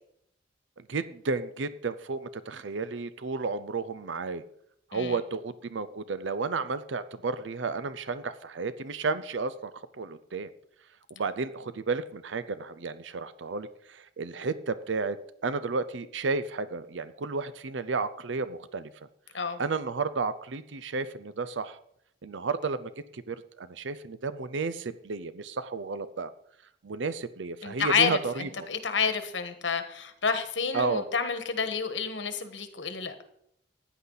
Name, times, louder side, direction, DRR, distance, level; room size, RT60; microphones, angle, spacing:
voice 1, 0.8-4.4 4.9-10.5 11.1-15.2 15.4-18.9 19.6-21.8 22.2-26.3 26.8-28.7 30.7-31.0, right 4 dB, 90° right, 14 dB, 0.6 m, -32 dB
voice 2, 27.6-33.1, left 5 dB, 90° left, 9 dB, 1.4 m, -29 dB
15.0 x 10.0 x 4.0 m, 0.72 s
head